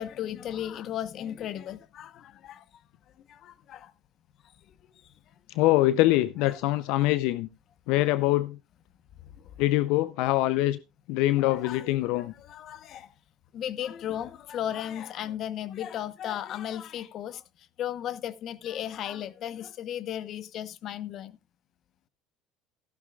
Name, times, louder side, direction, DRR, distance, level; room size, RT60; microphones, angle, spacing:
voice 1, 0.0-2.6 3.3-3.9 6.4-6.6 11.5-13.1 13.5-17.4 17.8-21.4, left 11 dB, 50° left, 0.9 m, -35 dB
voice 2, 5.6-7.5 7.9-8.6 9.6-10.8 11.1-12.3, left 16 dB, 70° left, 0.5 m, -24 dB
14.5 x 12.0 x 2.3 m
supercardioid pair, 110°, 0 cm